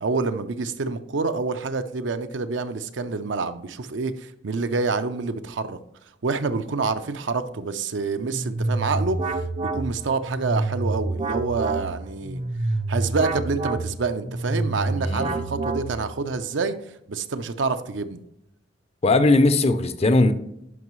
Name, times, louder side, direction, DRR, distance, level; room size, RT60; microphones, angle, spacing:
voice 1, 0.0-5.8 6.2-12.4 12.9-16.8 17.1-18.2, right 4 dB, 75° right, 0.6 m, -27 dB
sound 1, 8.2-16.3, right 2 dB, 35° right, 0.4 m, -27 dB
voice 2, 15.1-15.4 19.0-20.3, left 2 dB, 35° left, 0.5 m, -19 dB
11.0 x 5.4 x 3.1 m
head